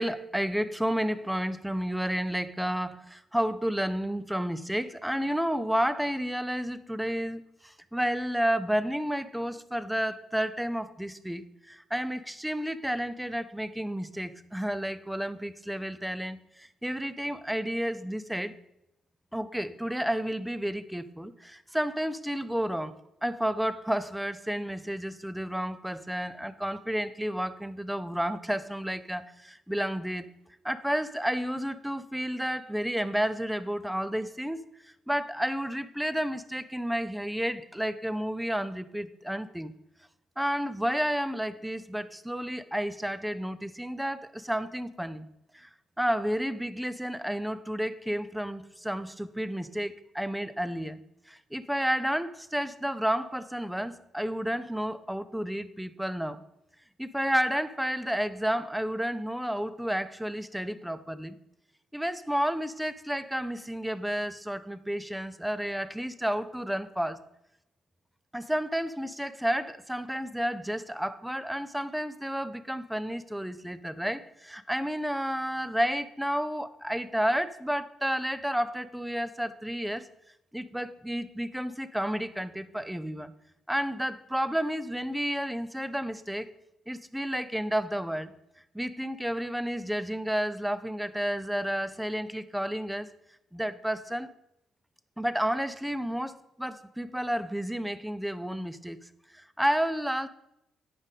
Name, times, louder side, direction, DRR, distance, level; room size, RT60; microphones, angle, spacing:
voice 1, 0.0-18.5 19.3-22.9 23.2-30.3 30.6-34.6 35.1-39.7 40.4-45.3 45.5-45.7 46.0-51.0 51.3-56.4 57.0-61.3 61.9-67.2 68.3-80.1 80.5-83.3 83.7-86.5 86.9-88.3 88.7-93.1 93.5-94.3 95.2-99.0 99.3-100.3, equal, 5° right, 14 dB, 0.5 m, -31 dB
9.9 x 5.1 x 4.1 m, 0.83 s
cardioid pair, 90°, 0 cm